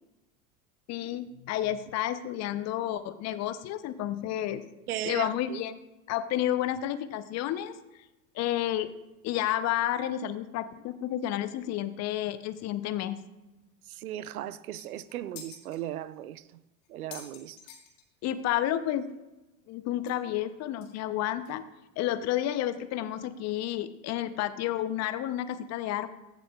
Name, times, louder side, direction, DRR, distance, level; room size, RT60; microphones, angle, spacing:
voice 1, 0.9-4.6 5.0-5.8 6.1-7.7 8.3-8.9 9.2-13.2 18.2-19.1 19.7-21.6 22.0-26.1, left 12 dB, 40° left, 0.6 m, -31 dB
voice 2, 4.9-5.6 14.0-16.4 16.9-17.6, right 12 dB, 80° right, 0.5 m, -36 dB
sound 1, 14.4-14.5 14.8-15.8 16.4-16.5 16.8-18.4 18.7-18.8 19.1-19.2 20.1-20.2 20.8-20.9 21.5-21.6, left 7 dB, 55° left, 1.9 m, -48 dB
15.5 x 6.9 x 2.3 m
hypercardioid pair, 80°, 43 cm